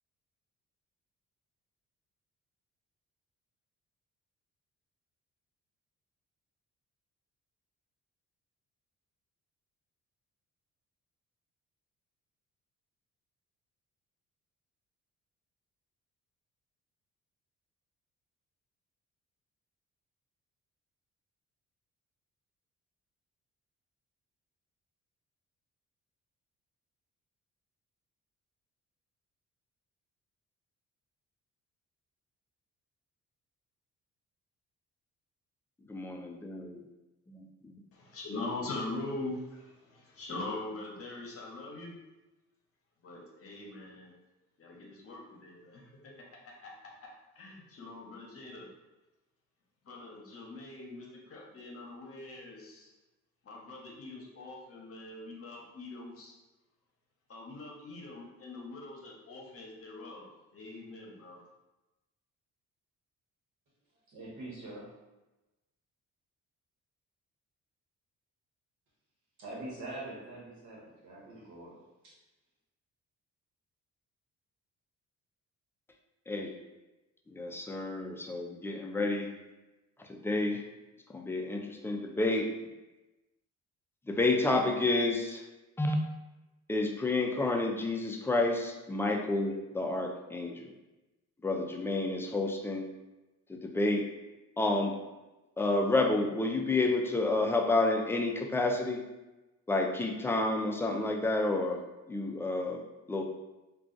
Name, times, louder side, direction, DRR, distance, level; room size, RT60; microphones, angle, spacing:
voice 1, 35.9-36.9 37.3-37.8 76.3-76.5 77.3-79.3 80.1-80.6 81.1-82.5 84.1-85.4 85.8-86.0 86.7-90.7 91.4-92.9 93.5-94.1 94.6-95.0 95.6-99.0 99.7-101.8 102.1-102.8 103.1-103.2, left 2 dB, 10° left, 2 dB, 0.3 m, -30 dB
voice 2, 37.9-42.0 43.0-44.1 44.6-46.1 46.6-47.1 47.3-48.7 49.8-52.9 53.4-56.3 57.3-61.4, left 2 dB, 50° left, -1 dB, 0.8 m, -42 dB
voice 3, 64.1-64.9 69.4-72.1, right 2 dB, 70° right, -5 dB, 1.1 m, -44 dB
2.4 x 2.3 x 3.8 m, 1.0 s
cardioid pair, 90°, 30 cm